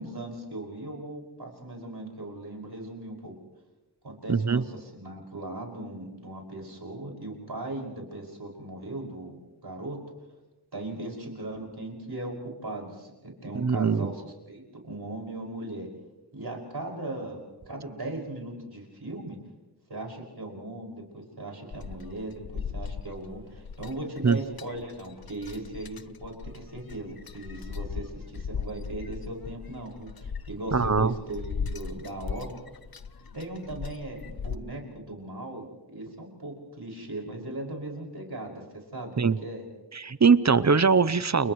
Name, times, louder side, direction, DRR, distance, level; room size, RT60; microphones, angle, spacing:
voice 1, 0.0-3.3 4.0-9.4 9.6-10.0 10.7-12.3 12.6-15.9 16.3-17.4 17.7-19.4 19.9-32.5 33.3-35.7 35.9-39.6, right 1 dB, 65° right, -1 dB, 6.0 m, -38 dB
voice 2, 4.3-4.6 13.5-14.1 24.2-24.4 30.7-31.1 39.2-39.4 39.9-41.5, right 5 dB, 40° right, 16 dB, 0.8 m, -22 dB
sound 1, 21.7-34.6, left 6 dB, 55° left, 0.8 m, -38 dB
30.0 x 29.5 x 3.2 m, 1.1 s
wide cardioid pair, 45°, 42 cm